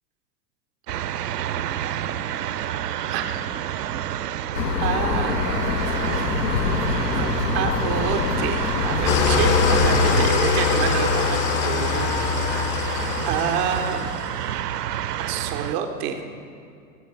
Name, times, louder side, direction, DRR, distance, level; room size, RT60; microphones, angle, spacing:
sound 1, 0.9-15.7, right 11 dB, 70° right, 0.6 m, -29 dB
voice 1, 3.1-3.4 4.8-5.3 7.1-12.8 13.3-14.1 15.2-16.3, right 7 dB, 15° right, 5 dB, 0.3 m, -28 dB
sound 2, 4.5-10.3, left 7 dB, 80° left, 0.7 m, -26 dB
Engine starting / Idling, 9.0-14.5, left 6 dB, 45° left, 1.0 m, -23 dB
17.5 x 7.3 x 5.8 m, 2.4 s
figure-of-eight pair, 95°, 49 cm